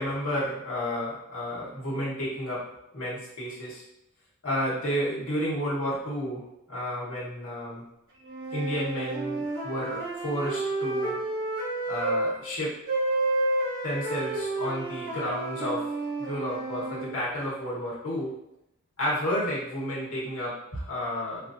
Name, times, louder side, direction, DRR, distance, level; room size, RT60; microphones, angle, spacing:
voice 1, 0.0-2.6 2.9-3.8 4.4-7.8 8.5-11.2 11.9-12.7 13.8-15.8 16.2-18.3 19.0-21.5, equal, 85° left, -6 dB, 1.3 m, -31 dB
sound 1, 8.2-12.3 12.9-17.1, right 2 dB, 65° right, 1.0 m, -30 dB
5.0 x 2.6 x 2.6 m, 0.85 s
head